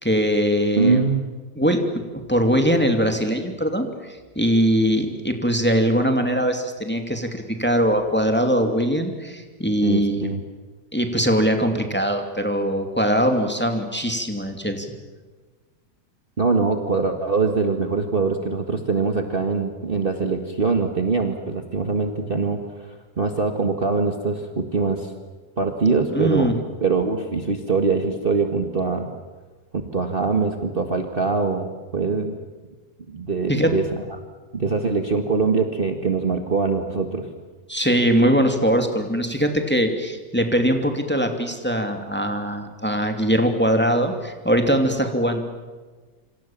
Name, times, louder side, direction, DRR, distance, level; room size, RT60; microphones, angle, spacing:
voice 1, 0.0-1.0 1.6-1.8 2.3-10.2 10.9-14.9 26.1-26.5 33.5-33.8 37.7-45.4, equal, 5° left, 5 dB, 2.6 m, -21 dB
voice 2, 0.8-1.2 9.8-10.4 16.4-25.1 25.6-29.1 29.9-32.4 33.1-33.8 34.5-37.3, right 4 dB, 35° right, 5 dB, 1.8 m, -23 dB
27.0 x 26.5 x 7.4 m, 1.3 s
omnidirectional pair, 1.8 m